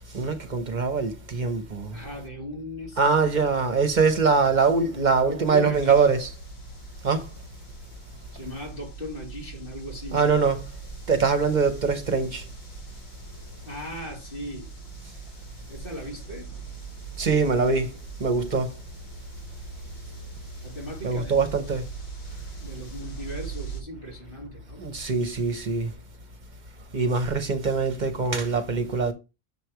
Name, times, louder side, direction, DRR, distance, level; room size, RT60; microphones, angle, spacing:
voice 1, 0.1-2.0 3.0-6.3 7.0-7.3 10.1-10.6 11.1-12.4 17.2-17.9 18.2-18.8 21.0-21.8 24.8-25.9 26.9-29.1, right 4 dB, 50° right, 0.9 m, -23 dB
voice 2, 1.9-3.4 4.9-6.1 8.3-10.3 13.6-14.7 15.7-16.5 20.6-21.5 22.6-24.8, equal, 60° left, 2.8 m, -38 dB
sound 1, 5.7-23.8, right 4 dB, 80° left, 1.5 m, -41 dB
7.0 x 3.2 x 4.5 m
omnidirectional pair, 1.0 m